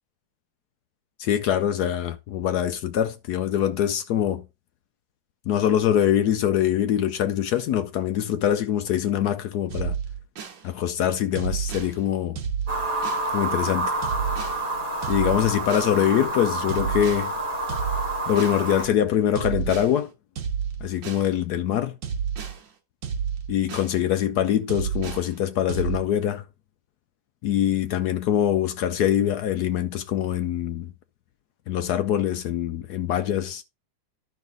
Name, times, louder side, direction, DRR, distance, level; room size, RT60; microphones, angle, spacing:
voice 1, 1.2-4.5 5.5-10.0 10.6-12.4 13.3-14.0 15.1-17.3 18.3-20.1 20.8-22.0 23.5-26.4 27.4-30.9 31.7-33.6, left 10 dB, 75° left, 0.9 m, -24 dB
sound 1, 9.7-10.6 11.3-11.9 12.4-13.3 14.0-14.6 15.0-15.9 16.7-17.3 17.7-18.6 19.3-19.9 20.4-21.3 22.0-22.6 23.0-23.9 24.7-25.3 25.7-26.0, right 7 dB, 70° right, 1.9 m, -30 dB
sound 2, 12.7-18.9, right 2 dB, 50° right, 3.6 m, -28 dB
11.0 x 5.5 x 3.8 m
omnidirectional pair, 2.2 m